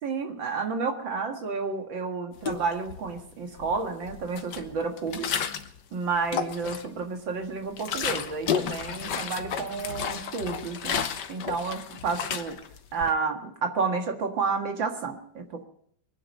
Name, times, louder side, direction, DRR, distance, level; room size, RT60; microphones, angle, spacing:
voice 1, 0.0-5.4 5.9-11.0 11.3-12.6 12.9-15.6, right 4 dB, 85° right, 4 dB, 2.5 m, -30 dB
sound 1, 2.4-3.2 3.6-5.8 6.1-7.0 7.4-13.1, left 8 dB, 70° left, 1.6 m, -32 dB
24.0 x 10.0 x 5.4 m, 0.64 s
omnidirectional pair, 2.0 m